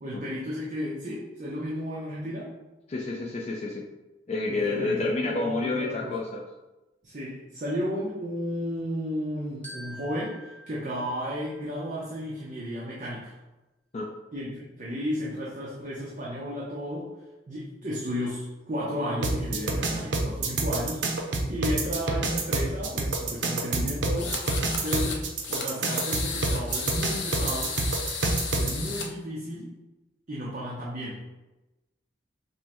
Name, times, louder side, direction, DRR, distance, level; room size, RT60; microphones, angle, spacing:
voice 1, 0.0-2.5 4.5-6.2 7.0-13.3 14.3-17.1 17.5-24.4 24.8-27.7 28.6-29.7 30.3-31.2, equal, 45° right, -6 dB, 0.6 m, -33 dB
voice 2, 2.9-3.8 4.3-6.4 13.9-14.1, left 3 dB, 35° left, -3 dB, 0.4 m, -29 dB
Glockenspiel, 9.6-12.1, right 1 dB, 10° left, 0.8 m, -47 dB
sound 1, 19.2-28.7, right 3 dB, 80° right, 0.6 m, -27 dB
sound 2, 24.1-25.2 25.4-29.1, left 5 dB, 85° left, 0.6 m, -34 dB
5.3 x 2.1 x 2.9 m, 1.0 s
head